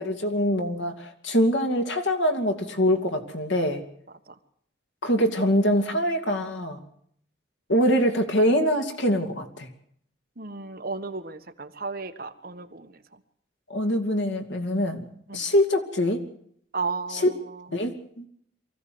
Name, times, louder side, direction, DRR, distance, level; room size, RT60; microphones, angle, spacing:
voice 1, 0.0-3.8 5.0-6.8 7.7-9.7 13.7-15.1 15.3-16.2 17.1-17.3 17.7-18.3, equal, 80° left, 4 dB, 2.6 m, -24 dB
voice 2, 10.4-13.0 15.3-15.5 16.7-17.7, right 4 dB, 50° right, 7 dB, 1.4 m, -34 dB
24.0 x 15.5 x 7.9 m, 0.69 s
head